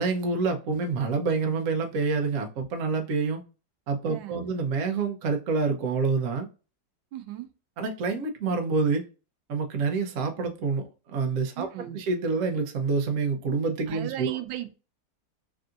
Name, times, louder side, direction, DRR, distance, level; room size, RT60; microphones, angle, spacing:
voice 1, 0.0-3.4 3.9-6.5 7.8-9.0 9.5-11.7 11.9-14.4, right 4 dB, 60° right, 0.8 m, -27 dB
voice 2, 4.1-4.5 7.1-7.5 11.6-12.0 13.9-14.7, right 13 dB, 90° right, 1.3 m, -36 dB
3.6 x 2.6 x 2.4 m
omnidirectional pair, 2.0 m